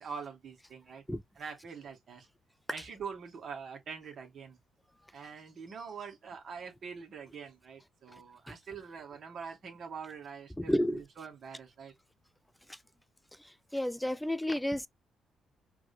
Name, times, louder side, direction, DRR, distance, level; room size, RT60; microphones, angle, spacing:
voice 1, 0.0-1.0 1.4-2.3 2.7-4.6 5.1-11.9, right 6 dB, 55° right, 2.2 m, -44 dB
voice 2, 10.7-11.0 13.7-14.9, left 1 dB, 5° left, 0.4 m, -30 dB
4.8 x 3.2 x 2.2 m
cardioid pair, 90°, 0 cm